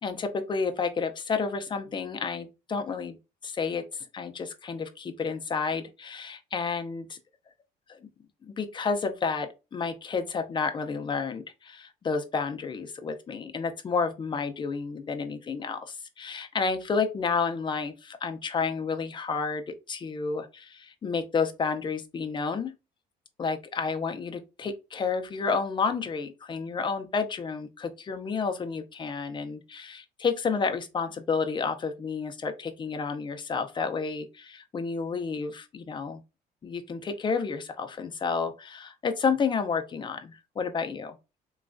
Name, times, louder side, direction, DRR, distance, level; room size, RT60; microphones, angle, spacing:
voice 1, 0.0-3.2 3.4-7.2 7.9-8.0 8.4-22.7 23.4-36.2 36.6-41.2, left 5 dB, 30° left, 0.5 m, -30 dB
3.1 x 2.3 x 2.5 m
cardioid pair, 110°, 17 cm